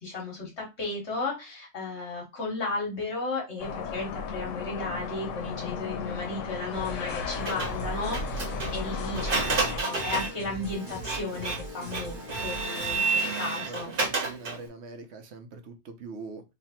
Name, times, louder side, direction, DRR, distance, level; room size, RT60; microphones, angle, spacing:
voice 1, 0.0-13.9, left 3 dB, 65° left, -1 dB, 1.5 m, -34 dB
sound 1, 3.6-9.8, left 5 dB, 90° left, 1.0 m, -34 dB
sound 2, 6.7-13.0, equal, 40° left, 1.4 m, -41 dB
Printer, 7.4-14.7, right 3 dB, 50° right, 1.1 m, -31 dB
voice 2, 13.2-16.4, right 4 dB, 65° right, 7 dB, 1.0 m, -43 dB
3.2 x 2.4 x 4.2 m, 0.24 s
omnidirectional pair, 1.3 m